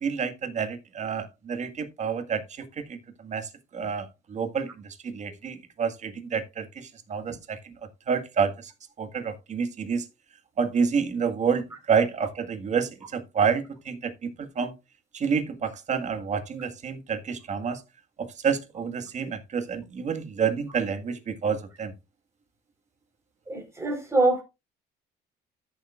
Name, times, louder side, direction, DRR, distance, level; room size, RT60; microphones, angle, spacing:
voice 1, 0.0-2.7 3.2-3.5 3.7-7.6 8.1-8.5 9.0-10.0 10.6-14.7 15.1-17.8 18.2-21.9, right 6 dB, 45° right, 1.7 m, -28 dB
voice 2, 23.5-24.4, right 2 dB, 15° right, 4.3 m, -24 dB
13.5 x 7.2 x 2.4 m
cardioid pair, 110°, 17 cm